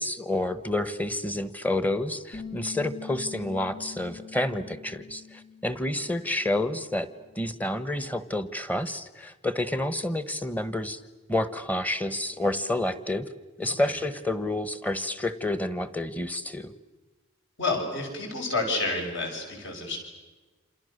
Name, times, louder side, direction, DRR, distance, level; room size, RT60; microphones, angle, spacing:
voice 1, 0.0-7.1 7.3-11.0 11.3-13.3 13.6-16.7, left 1 dB, 10° left, 13 dB, 1.1 m, -29 dB
Bass guitar, 2.3-8.6, left 5 dB, 75° left, 7.6 m, -45 dB
voice 2, 17.6-20.0, left 3 dB, 60° left, 2 dB, 6.3 m, -29 dB
28.5 x 27.5 x 6.7 m, 1.3 s
head